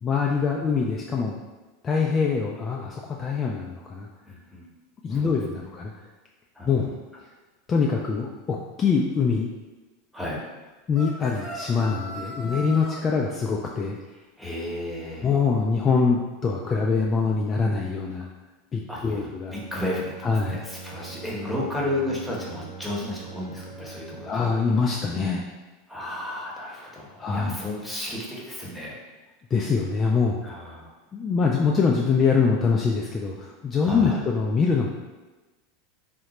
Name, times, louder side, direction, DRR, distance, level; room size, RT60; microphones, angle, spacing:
voice 1, 0.0-1.4 1.8-4.1 5.0-5.9 6.7-6.9 7.7-9.5 10.9-14.0 15.2-18.3 18.7-19.5 20.2-20.6 24.3-25.4 27.2-27.6 29.5-30.4 31.1-34.9, left 5 dB, 30° left, -1 dB, 0.3 m, -24 dB
voice 2, 4.3-4.7 5.1-5.7 6.5-6.9 10.1-10.4 12.9-13.0 14.4-15.3 18.9-24.5 25.9-28.9 30.4-30.9 33.8-34.2, left 1 dB, ahead, -5 dB, 0.9 m, -33 dB
sound 1, 10.9-13.0, equal, 30° right, 0.6 m, -38 dB
Bowed string instrument, 19.4-24.5, right 4 dB, 70° right, 0.8 m, -42 dB
3.6 x 2.1 x 2.9 m, 1.2 s
figure-of-eight pair, 85°, 0 cm